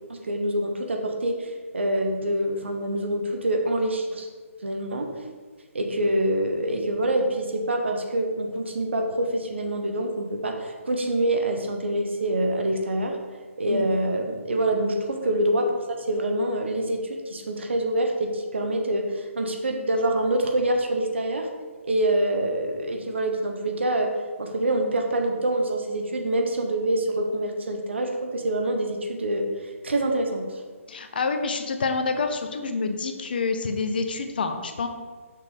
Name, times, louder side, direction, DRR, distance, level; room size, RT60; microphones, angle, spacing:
voice 1, 0.1-4.3 4.6-5.2 5.7-13.2 13.6-21.5 21.8-24.1 24.4-29.5 29.8-30.6, right 1 dB, 55° right, 3 dB, 1.0 m, -26 dB
voice 2, 30.9-34.9, left 4 dB, 45° left, 7 dB, 0.6 m, -27 dB
6.0 x 5.9 x 3.9 m, 1.5 s
figure-of-eight pair, 140°, 7 cm